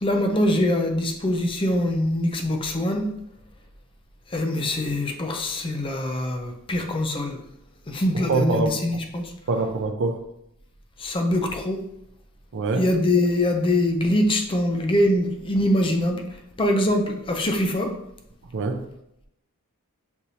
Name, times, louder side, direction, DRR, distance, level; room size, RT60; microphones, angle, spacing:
voice 1, 0.0-3.1 4.3-7.4 7.9-9.3 11.0-11.8 12.8-16.2 16.6-17.9, left 1 dB, 25° left, 0.4 m, -23 dB
voice 2, 8.1-9.0 9.5-10.2 12.5-12.9 18.5-18.9, right 3 dB, 55° right, 0.5 m, -25 dB
6.2 x 2.7 x 2.8 m
head